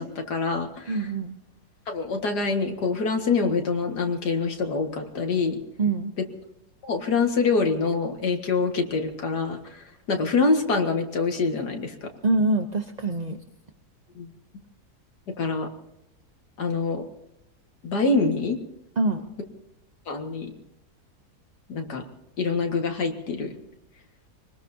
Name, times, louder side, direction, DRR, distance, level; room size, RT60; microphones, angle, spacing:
voice 1, 0.0-1.0 1.9-5.6 6.8-12.1 14.1-14.3 15.4-15.7 16.6-17.1 17.8-18.6 20.1-20.5 21.7-22.0 22.4-23.6, left 4 dB, 80° left, 3 dB, 2.4 m, -25 dB
voice 2, 0.9-1.3 5.8-6.1 12.2-13.4 19.0-19.2, right 2 dB, 40° right, 6 dB, 0.6 m, -24 dB
25.0 x 20.0 x 2.8 m, 0.86 s
omnidirectional pair, 1.7 m